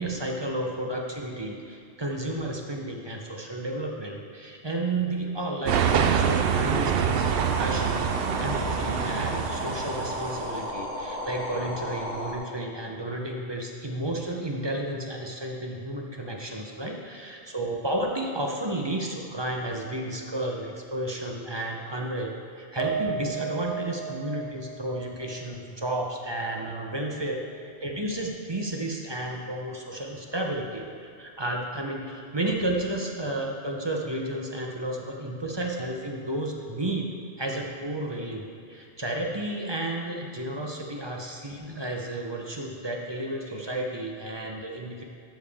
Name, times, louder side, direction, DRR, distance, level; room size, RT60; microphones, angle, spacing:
voice 1, 0.0-8.1 8.4-37.1 37.4-45.0, right 1 dB, 25° right, 1 dB, 0.7 m, -32 dB
sound 1, 5.7-10.6, right 7 dB, 65° right, 0.7 m, -25 dB
sound 2, 7.1-12.4, left 1 dB, 70° left, 1.8 m, -34 dB
Piano, 22.8-27.3 27.6-27.8 28.2-28.3, right 7 dB, 45° right, 2.0 m, -36 dB
12.0 x 6.9 x 3.5 m, 2.6 s
omnidirectional pair, 1.3 m